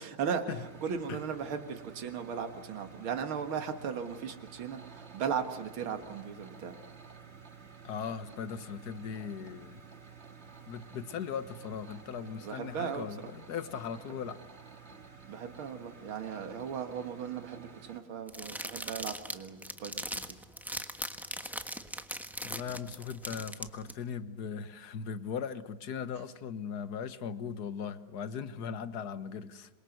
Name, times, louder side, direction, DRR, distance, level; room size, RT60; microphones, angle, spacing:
voice 1, 0.0-6.8 12.4-13.1 15.3-20.2, right 7 dB, 80° right, 6 dB, 2.5 m, -37 dB
sound 1, 0.6-18.0, right 5 dB, 35° right, 2.1 m, -52 dB
voice 2, 7.8-9.8 10.7-14.4 22.4-29.7, left 7 dB, 55° left, 12 dB, 1.7 m, -38 dB
sound 2, 18.3-23.9, equal, ahead, 0.9 m, -39 dB
27.5 x 23.0 x 8.0 m, 1.1 s
omnidirectional pair, 2.2 m